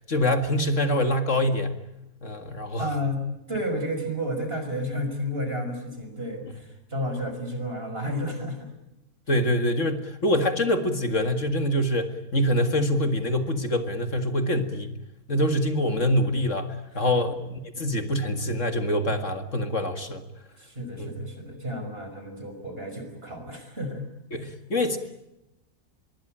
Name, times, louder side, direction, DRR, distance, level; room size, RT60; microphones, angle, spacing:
voice 1, 0.1-1.8 2.2-2.9 9.3-14.9 15.3-20.2 21.0-21.1 24.3-25.0, left 1 dB, 55° left, 8 dB, 2.2 m, -25 dB
voice 2, 2.8-3.2 3.5-8.7 16.9-17.1 20.6-24.0 24.4-24.5, equal, 40° right, 6 dB, 6.0 m, -32 dB
25.5 x 22.5 x 8.9 m, 0.92 s
omnidirectional pair, 1.6 m